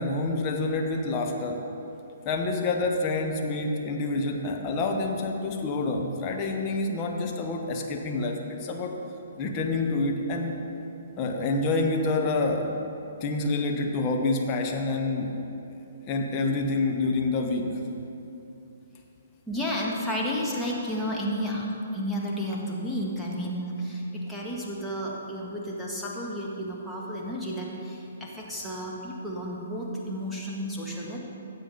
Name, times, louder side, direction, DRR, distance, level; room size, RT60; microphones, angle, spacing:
voice 1, 0.0-1.6 2.2-8.9 9.4-10.6 11.2-12.9 13.2-15.3 16.1-17.7, left 3 dB, 25° left, 2 dB, 1.1 m, -27 dB
voice 2, 19.5-21.7 21.9-31.2, equal, 5° left, -5 dB, 1.5 m, -32 dB
15.0 x 7.4 x 3.9 m, 2.9 s
figure-of-eight pair, 125°, 0 cm